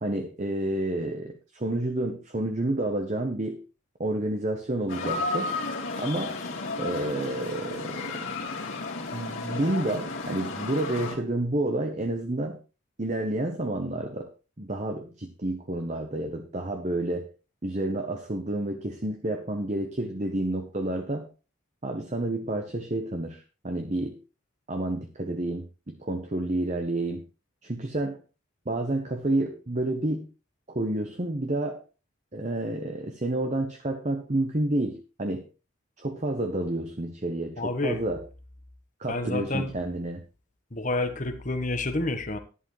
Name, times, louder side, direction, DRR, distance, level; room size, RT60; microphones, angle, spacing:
voice 1, 0.0-3.6 4.0-5.5 6.0-6.4 6.8-8.2 9.1-12.6 13.0-14.3 14.6-17.3 17.6-21.3 21.8-24.2 24.7-27.2 27.6-28.2 28.7-30.3 30.7-31.8 32.3-35.5 36.0-38.2 39.0-40.2, right 1 dB, 35° right, 5 dB, 1.0 m, -29 dB
sound 1, 4.9-11.2, left 3 dB, 65° left, 2.9 m, -33 dB
voice 2, 37.6-38.0 39.1-39.7 40.7-42.4, left 2 dB, 35° left, 8 dB, 1.3 m, -29 dB
11.0 x 11.0 x 3.2 m, 0.33 s
head